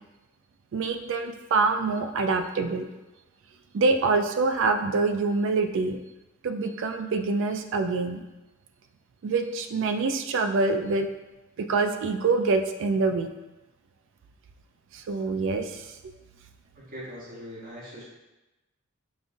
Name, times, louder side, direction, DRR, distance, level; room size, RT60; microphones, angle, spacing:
voice 1, 0.7-2.9 3.7-6.0 6.4-8.2 9.2-11.1 11.6-13.3 14.9-15.9, right 3 dB, 65° right, 7 dB, 0.3 m, -25 dB
voice 2, 16.8-18.0, equal, 45° right, -7 dB, 0.9 m, -41 dB
5.4 x 2.3 x 2.6 m, 1.0 s
head